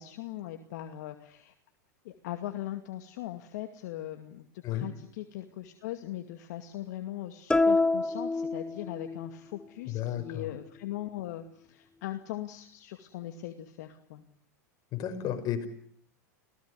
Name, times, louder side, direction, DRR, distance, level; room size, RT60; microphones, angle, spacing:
voice 1, 0.0-1.5 2.0-14.2, left 13 dB, 65° left, 6 dB, 2.4 m, -40 dB
sound 1, 7.5-9.3, left 3 dB, 10° left, 1.1 m, -27 dB
voice 2, 9.9-10.5 14.9-15.7, left 10 dB, 45° left, 8 dB, 5.7 m, -32 dB
28.5 x 18.5 x 9.8 m, 0.62 s
hypercardioid pair, 95°, 9 cm